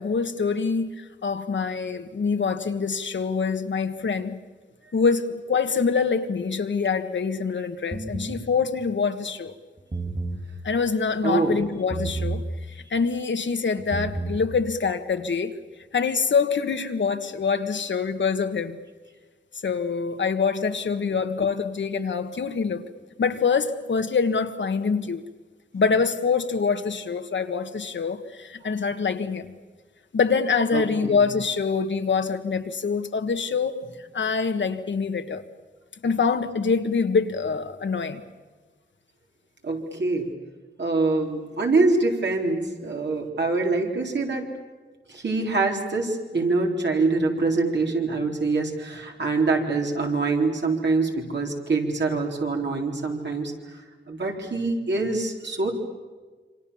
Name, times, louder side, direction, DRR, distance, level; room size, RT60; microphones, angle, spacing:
voice 1, 0.0-4.4 4.9-9.5 10.6-12.4 12.9-15.5 15.9-18.8 19.6-22.9 23.2-25.2 25.7-29.5 30.1-33.8 34.1-35.4 36.0-38.2, left 5 dB, 75° left, 1.6 m, -25 dB
sound 1, 7.9-8.4 9.8-10.4 11.9-12.4 13.8-14.4, right 3 dB, 35° right, 3.6 m, -30 dB
voice 2, 11.2-11.6 30.7-31.2 39.6-40.3 40.8-44.5 45.1-55.7, right 3 dB, 65° right, 4.1 m, -25 dB
27.5 x 25.5 x 7.2 m
wide cardioid pair, 105°, 19 cm